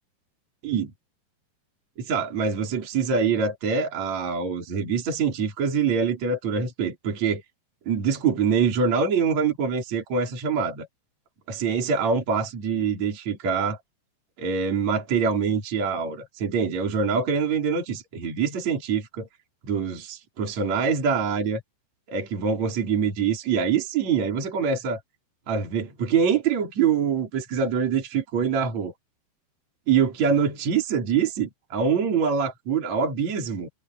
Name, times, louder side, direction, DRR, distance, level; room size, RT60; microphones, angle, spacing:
voice 1, 2.0-7.4 7.9-10.9 11.5-13.8 14.4-19.3 19.6-21.6 22.1-25.0 25.5-28.9 29.9-33.7, right 6 dB, 40° right, 5.1 m, -24 dB
omnidirectional pair, 5.2 m